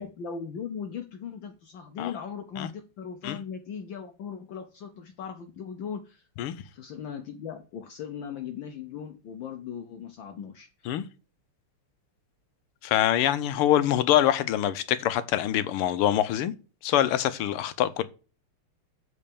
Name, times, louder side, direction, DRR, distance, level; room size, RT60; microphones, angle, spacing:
voice 1, 0.0-6.3 6.7-10.9, left 7 dB, 65° left, 1.5 m, -38 dB
voice 2, 12.8-16.5 16.8-18.0, left 12 dB, 80° left, 1.7 m, -24 dB
8.6 x 4.5 x 6.9 m
omnidirectional pair, 2.4 m